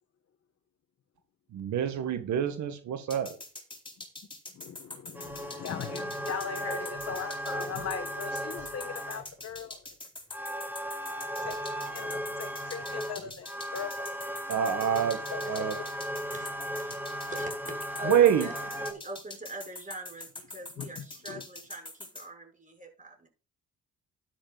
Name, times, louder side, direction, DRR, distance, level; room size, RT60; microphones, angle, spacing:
voice 1, 1.5-3.4 14.5-15.8 18.0-18.5, right 9 dB, 70° right, 9 dB, 1.8 m, -26 dB
sound 1, 3.1-22.3, left 2 dB, 15° left, 4.1 m, -44 dB
voice 2, 4.5-9.9 11.4-14.3 15.3-15.8 20.8-21.4, left 7 dB, 50° left, 7 dB, 1.5 m, -40 dB
sound 2, 5.1-9.4 10.3-18.9, equal, 5° right, 2.8 m, -36 dB
voice 3, 16.3-16.9 17.3-23.3, right 2 dB, 25° right, 2 dB, 6.5 m, -43 dB
12.5 x 11.5 x 2.5 m, 0.35 s
cardioid pair, 90°, 30 cm